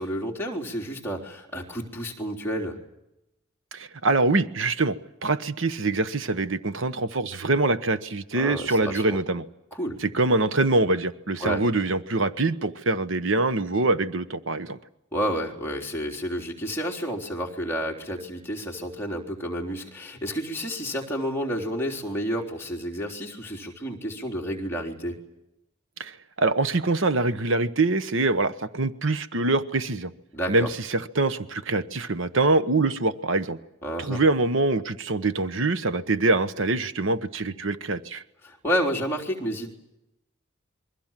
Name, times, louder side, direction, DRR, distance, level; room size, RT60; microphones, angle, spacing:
voice 1, 0.0-2.8 8.3-9.2 9.7-10.0 11.4-11.6 15.1-25.2 30.3-30.7 33.8-34.2 38.4-39.7, equal, 10° left, -2 dB, 3.8 m, -30 dB
voice 2, 3.7-5.0 5.2-9.4 10.0-14.8 26.0-30.1 30.5-33.6 34.0-38.2, right 2 dB, 70° right, 13 dB, 1.1 m, -24 dB
28.0 x 23.0 x 7.5 m, 0.87 s
head